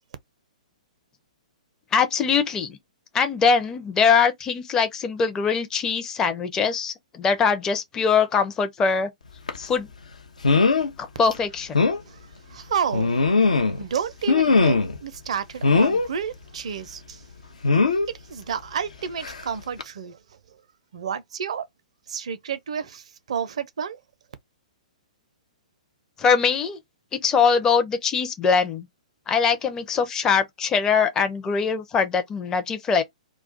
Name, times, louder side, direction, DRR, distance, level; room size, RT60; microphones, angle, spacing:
voice 1, 1.9-2.8 3.1-9.1 9.6-9.9 11.0-11.9 26.2-26.8 27.1-28.9 29.3-33.0, left 6 dB, 15° left, 0.5 m, -22 dB
sound 1, 9.5-9.6 10.4-10.9 11.3-11.4 11.7-12.0 12.9-13.8 14.3-15.0 15.6-16.1 17.6-18.1 19.2-19.4 19.8-19.9, left 4 dB, 70° left, 0.5 m, -19 dB
voice 2, 12.1-13.2 13.7-17.3 18.1-20.2 20.5-20.6 20.9-21.7 22.1-24.0, right 7 dB, 55° right, 0.5 m, -31 dB
2.4 x 2.2 x 3.6 m
figure-of-eight pair, 115°, 4 cm